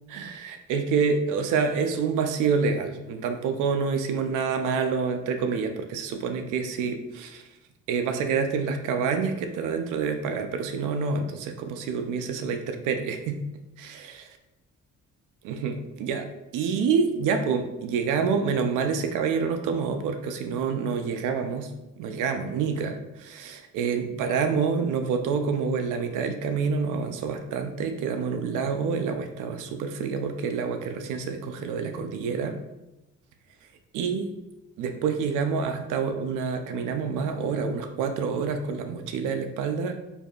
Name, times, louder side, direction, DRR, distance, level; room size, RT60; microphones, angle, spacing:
voice 1, 0.1-7.4 7.9-13.4 13.8-14.3 15.4-16.3 16.5-21.7 22.0-32.5 33.9-34.3 34.8-39.9, right 5 dB, 90° right, 6 dB, 0.5 m, -27 dB
4.6 x 2.6 x 2.3 m, 0.98 s
cardioid pair, 90°, 30 cm